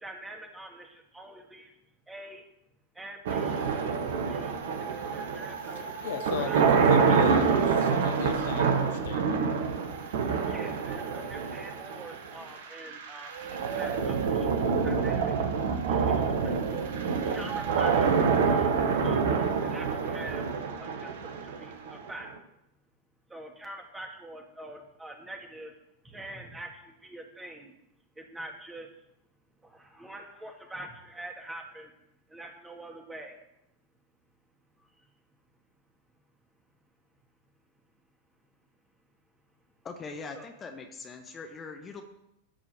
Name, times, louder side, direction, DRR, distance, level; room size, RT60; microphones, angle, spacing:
voice 1, 0.0-1.7 2.1-2.4 3.0-3.6 4.0-5.9 6.2-6.6 10.5-14.5 14.8-15.4 15.9-16.9 17.3-18.7 19.0-20.5 20.8-22.3 23.3-25.7 26.0-27.7 28.2-28.9 29.6-31.9 32.3-33.4 40.4-40.5, right 1 dB, 10° right, 3 dB, 2.2 m, -45 dB
sound 1, 3.3-22.3, right 5 dB, 55° right, 1.3 m, -27 dB
voice 2, 5.7-9.4, left 8 dB, 55° left, 8 dB, 0.9 m, -37 dB
voice 3, 39.8-42.0, left 4 dB, 20° left, 3 dB, 1.3 m, -41 dB
13.5 x 4.8 x 7.8 m, 0.84 s
figure-of-eight pair, 90°, 0 cm